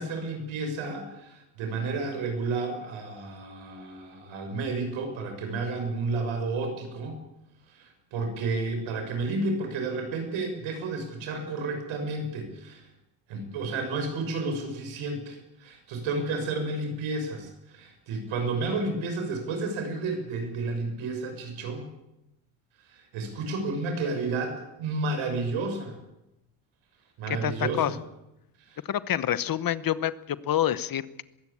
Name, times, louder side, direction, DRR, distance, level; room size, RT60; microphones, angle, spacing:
voice 1, 0.0-7.2 7.7-12.9 13.3-21.9 22.9-26.0 27.2-28.0 28.7-28.8, right 3 dB, 80° right, 5 dB, 6.5 m, -31 dB
voice 2, 27.4-27.9 28.9-31.2, left 11 dB, 45° left, 15 dB, 1.0 m, -27 dB
22.0 x 16.0 x 8.6 m, 0.93 s
cardioid pair, 120°, 47 cm